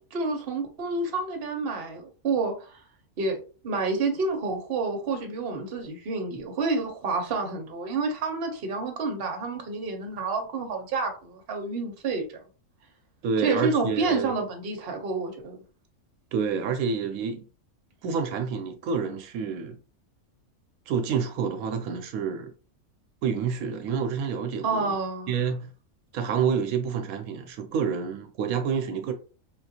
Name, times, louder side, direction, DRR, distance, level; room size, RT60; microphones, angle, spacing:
voice 1, 0.1-2.8 3.2-3.4 3.6-12.3 13.4-15.6 24.6-25.4, right 3 dB, 50° right, 0.9 m, -29 dB
voice 2, 13.2-14.3 16.3-17.4 18.0-19.8 20.9-22.5 23.2-25.0 25.3-25.7 26.1-29.1, right 6 dB, 80° right, 1.0 m, -28 dB
3.8 x 2.5 x 2.7 m
omnidirectional pair, 1.5 m